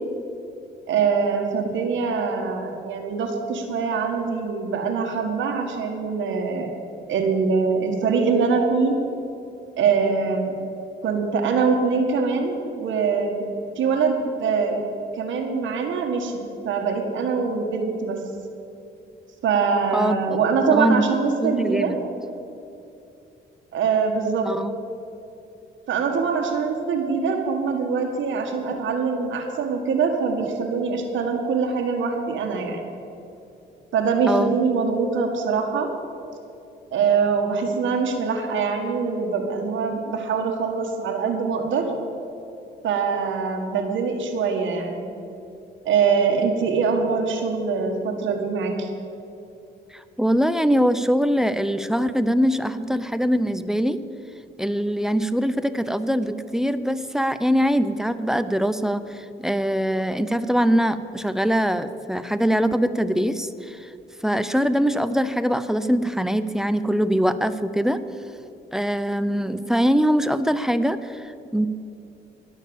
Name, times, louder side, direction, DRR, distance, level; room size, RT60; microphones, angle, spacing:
voice 1, 0.9-6.8 7.1-9.0 9.8-10.5 11.0-13.4 13.8-14.8 15.1-18.2 19.4-22.0 23.7-24.5 25.9-32.8 33.9-35.9 36.9-41.9 42.8-45.1 45.9-48.9, right 5 dB, 75° right, 3 dB, 1.7 m, -23 dB
voice 2, 20.7-21.0 21.4-22.0 24.5-24.7 34.3-34.6 49.9-54.0 54.6-63.9 64.2-68.0 68.7-71.7, equal, ahead, 12 dB, 0.6 m, -22 dB
18.5 x 6.5 x 7.1 m, 2.7 s
cardioid pair, 90°, 20 cm